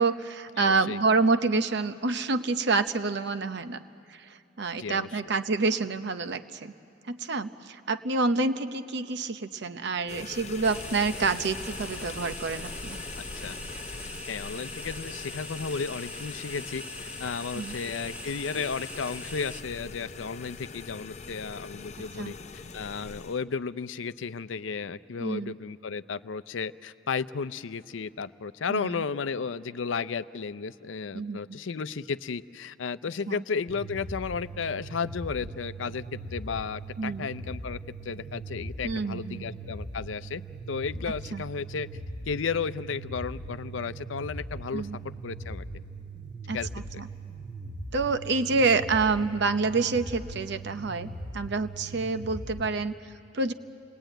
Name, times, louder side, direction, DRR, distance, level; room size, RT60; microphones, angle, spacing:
voice 1, 0.0-3.8 4.1-6.7 7.1-13.0 17.5-17.7 22.2-22.3 25.2-25.5 28.7-29.0 31.1-31.4 33.3-33.4 37.0-37.3 38.8-39.4 41.3-41.4 44.7-45.0 46.5-46.6 47.0-47.1 47.9-51.1 51.3-53.5, right 3 dB, 60° right, 10 dB, 0.8 m, -28 dB
voice 2, 0.6-1.0 4.8-5.1 13.4-13.6 14.3-16.8 17.2-22.3 22.7-40.4 40.7-41.9 42.3-44.9 45.2-45.6 46.5-46.7, left 5 dB, 75° left, 12 dB, 0.5 m, -33 dB
sound 1, 10.1-23.4, left 4 dB, 35° left, 0.6 m, -43 dB
sound 2, 10.6-19.6, left 1 dB, 10° right, 1.4 m, -41 dB
sound 3, 33.7-52.7, right 2 dB, 25° right, 1.6 m, -40 dB
29.0 x 20.5 x 9.1 m, 2.5 s
head